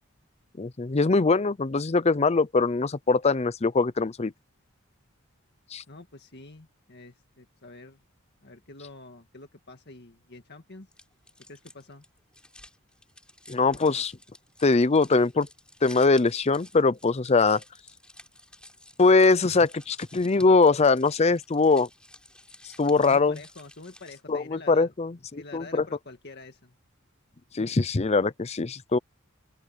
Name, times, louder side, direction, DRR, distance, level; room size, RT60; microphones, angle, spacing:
voice 1, 0.6-4.3 5.7-5.8 13.5-14.1 14.6-15.5 15.8-17.6 19.0-21.9 22.8-23.4 24.3-25.8 27.5-29.0, left 3 dB, 30° left, 0.6 m, -22 dB
voice 2, 5.9-8.0 8.4-10.9 11.5-12.0 23.0-24.9 25.3-26.7, left 3 dB, 50° left, 1.8 m, -46 dB
sound 1, 10.9-24.4, left 1 dB, 5° left, 5.2 m, -52 dB
head